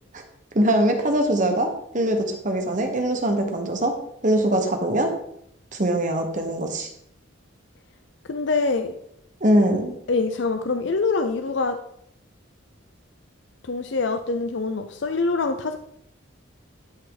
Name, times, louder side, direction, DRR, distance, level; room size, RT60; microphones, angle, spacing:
voice 1, 0.5-1.7 1.9-3.9 4.2-5.1 5.7-6.9 9.4-10.0, right 1 dB, 40° right, 4 dB, 1.2 m, -22 dB
voice 2, 8.3-9.0 10.1-11.8 13.6-15.8, left 3 dB, 60° left, 7 dB, 0.6 m, -24 dB
12.0 x 5.6 x 3.9 m, 0.73 s
head